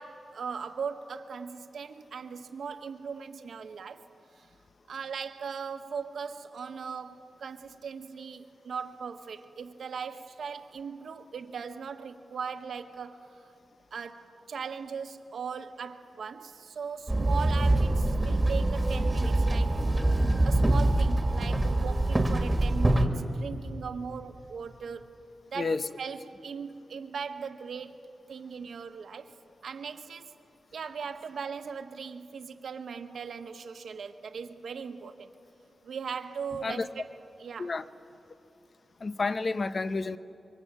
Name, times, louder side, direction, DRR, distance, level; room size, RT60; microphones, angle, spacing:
voice 1, 0.0-4.0 4.4-4.5 4.9-13.5 13.9-19.8 20.4-25.1 25.5-28.0 28.3-29.3 29.6-30.3 30.7-35.3 35.8-37.0 37.4-37.7, right 6 dB, 70° right, 7 dB, 1.4 m, -39 dB
Walk footsteps / Chatter / Hiss, 17.1-23.1, right 1 dB, 15° right, 1.9 m, -24 dB
voice 2, 25.6-25.9 36.6-36.9 37.6-37.8 39.0-40.2, left 3 dB, 40° left, 12 dB, 0.8 m, -30 dB
26.5 x 24.5 x 8.3 m, 2.7 s
wide cardioid pair, 150°, 0 cm